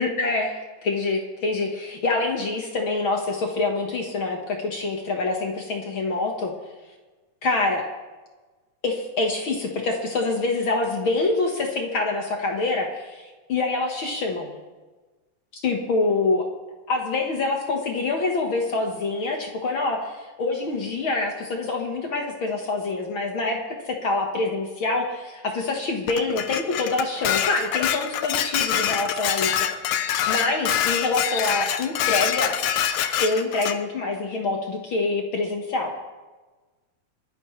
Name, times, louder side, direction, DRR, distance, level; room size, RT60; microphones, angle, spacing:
voice 1, 0.0-6.5 7.4-7.9 8.8-14.5 15.5-16.5 16.9-23.6 23.9-29.7 30.3-32.6 33.2-35.9, left 3 dB, 50° left, 1 dB, 1.7 m, -26 dB
Dishes pots and pans, 26.1-33.8, left 10 dB, 80° left, 1.5 m, -25 dB
29.0 x 10.5 x 3.2 m, 1.3 s
omnidirectional pair, 3.7 m